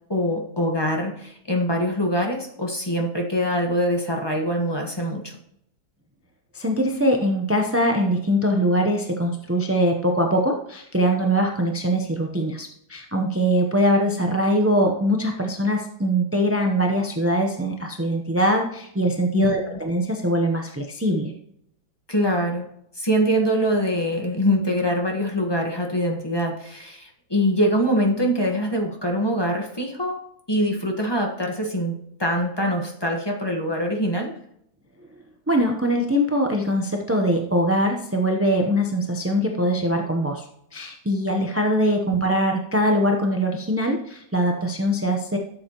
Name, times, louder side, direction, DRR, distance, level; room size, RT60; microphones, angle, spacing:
voice 1, 0.1-5.4 19.3-19.8 22.1-22.7 23.0-30.2 30.5-34.3, equal, 15° left, 1 dB, 1.3 m, -24 dB
voice 2, 6.5-21.3 35.5-40.4 40.7-45.4, equal, 15° right, 2 dB, 0.5 m, -22 dB
12.5 x 7.3 x 3.0 m, 0.72 s
omnidirectional pair, 1.8 m